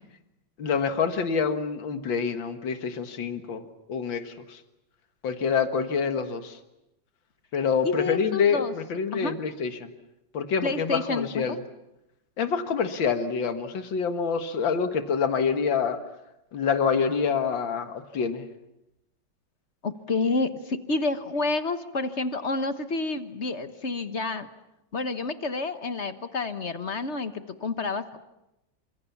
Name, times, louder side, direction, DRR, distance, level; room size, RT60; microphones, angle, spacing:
voice 1, 0.6-3.6 3.9-4.6 5.2-6.6 7.5-9.9 10.3-11.6 12.4-16.0 16.5-18.5, left 6 dB, 85° left, 8 dB, 2.3 m, -26 dB
voice 2, 7.8-8.7 9.1-9.4 10.6-11.6 19.8-24.5 24.9-28.2, left 3 dB, 40° left, 10 dB, 1.4 m, -29 dB
27.5 x 26.5 x 7.2 m, 0.89 s
omnidirectional pair, 2.0 m